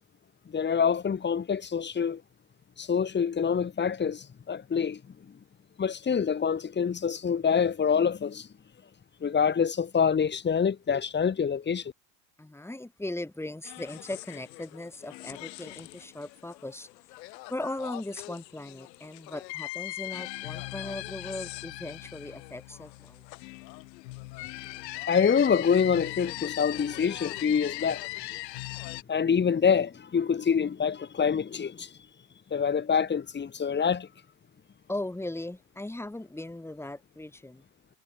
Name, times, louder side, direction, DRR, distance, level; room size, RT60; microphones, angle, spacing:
voice 1, 0.5-2.2 2.8-5.0 5.8-8.5 9.2-11.8 25.1-28.4 29.1-31.9 32.5-34.1, left 6 dB, 20° left, 4.2 m, -26 dB
voice 2, 12.4-16.9 17.5-23.2 34.9-37.6, left 1 dB, 5° left, 7.1 m, -38 dB
sound 1, 13.6-29.0, left 20 dB, 80° left, 4.9 m, -40 dB
supercardioid pair, 130°, 49 cm